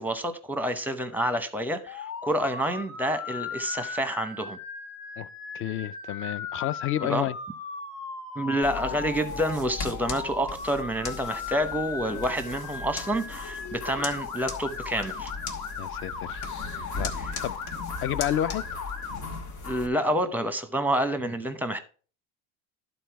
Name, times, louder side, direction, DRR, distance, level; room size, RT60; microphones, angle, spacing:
voice 1, 0.0-4.6 7.0-7.3 8.4-15.3 19.6-21.8, right 1 dB, 5° right, 0.8 m, -28 dB
Motor vehicle (road) / Siren, 1.9-19.2, left 5 dB, 55° left, 2.0 m, -37 dB
voice 2, 5.5-7.4 15.8-16.4 17.0-17.1 17.4-17.6 18.0-18.6, left 12 dB, 35° left, 0.4 m, -30 dB
sound 1, 8.6-19.9, left 4 dB, 70° left, 1.8 m, -38 dB
11.5 x 4.2 x 4.6 m
supercardioid pair, 115°, 39 cm